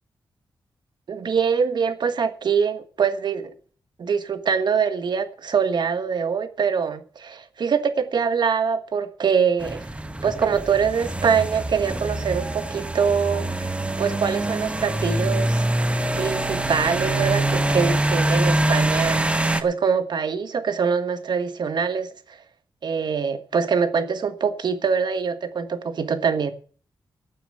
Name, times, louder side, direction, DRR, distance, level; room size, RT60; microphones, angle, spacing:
voice 1, 1.1-3.5 4.0-9.8 10.2-13.4 14.0-15.6 16.2-22.1 22.8-26.5, right 6 dB, 65° right, 1.5 m, -24 dB
sound 1, 9.6-19.6, right 1 dB, 15° right, 1.1 m, -24 dB
12.0 x 7.1 x 8.6 m
wide cardioid pair, 125°, 8 cm